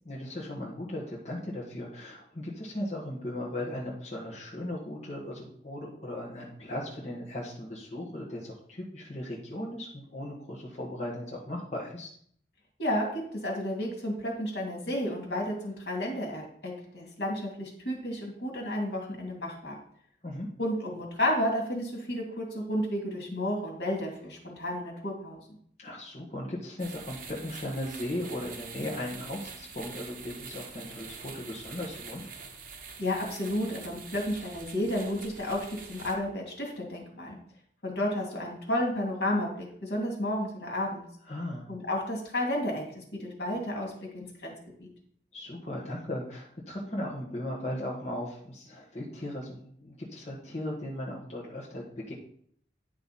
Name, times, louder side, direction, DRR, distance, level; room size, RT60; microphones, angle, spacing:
voice 1, 0.0-12.1 20.2-20.5 25.8-32.2 41.3-41.7 45.3-52.1, left 1 dB, 40° left, -5 dB, 1.6 m, -37 dB
voice 2, 12.8-19.8 20.6-25.4 33.0-37.4 37.8-41.0 41.7-44.5, left 1 dB, 70° left, -1 dB, 2.5 m, -32 dB
sound 1, 26.8-36.2, right 5 dB, 50° right, 1.2 m, -45 dB
10.0 x 5.6 x 4.2 m, 0.63 s
head